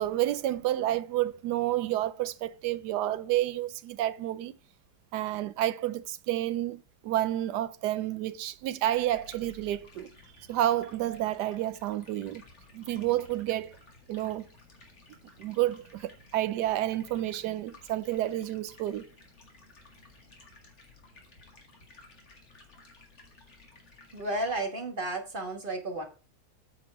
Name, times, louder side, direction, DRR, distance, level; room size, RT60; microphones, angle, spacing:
voice 1, 0.0-4.5 5.1-10.1 10.5-12.4 12.7-13.8 14.1-14.5 15.4-19.1, right 13 dB, 85° right, 1.2 m, -30 dB
Stream, 9.1-24.6, left 3 dB, 45° left, 2.2 m, -56 dB
voice 2, 24.1-26.0, right 2 dB, 35° right, 1.5 m, -32 dB
8.8 x 5.6 x 4.7 m
omnidirectional pair, 1.8 m